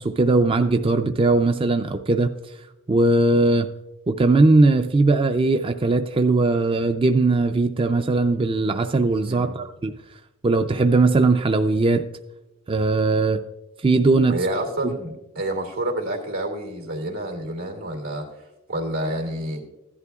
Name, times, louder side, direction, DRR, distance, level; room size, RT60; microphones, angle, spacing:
voice 1, 0.0-2.3 2.9-3.7 4.1-9.9 10.4-12.0 12.7-13.4 13.8-14.4, right 3 dB, 25° right, 7 dB, 0.4 m, -19 dB
voice 2, 9.3-9.6 14.3-19.6, right 1 dB, 85° right, 1 dB, 2.6 m, -29 dB
16.0 x 11.0 x 2.4 m, 0.96 s
head